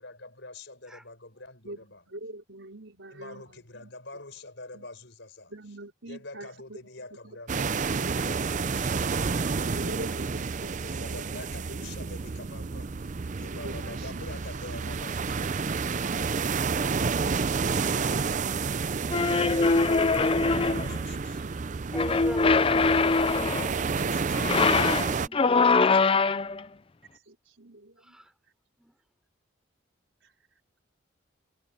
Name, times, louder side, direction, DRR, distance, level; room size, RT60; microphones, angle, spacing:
voice 1, 0.0-2.0 3.1-5.5 6.1-10.1 10.7-12.9 13.4-16.7 17.4-18.6 20.4-21.5 23.8-25.0, left 2 dB, 60° left, 6.7 m, -46 dB
voice 2, 1.6-4.2 4.7-4.9 5.5-6.8 7.2-8.5 9.4-12.4 13.3-14.3 14.6-14.7 26.0-26.6 27.1-28.2 30.2-30.3, right 1 dB, 70° right, 5.1 m, -46 dB
sound 1, 7.5-25.3, right 5 dB, 40° right, 0.5 m, -30 dB
sound 2, 19.1-21.0 21.9-23.7 24.3-26.6, left 4 dB, 25° left, 0.5 m, -23 dB
voice 3, 21.9-22.8 28.0-28.3 28.8-29.0, equal, 5° right, 4.0 m, -40 dB
head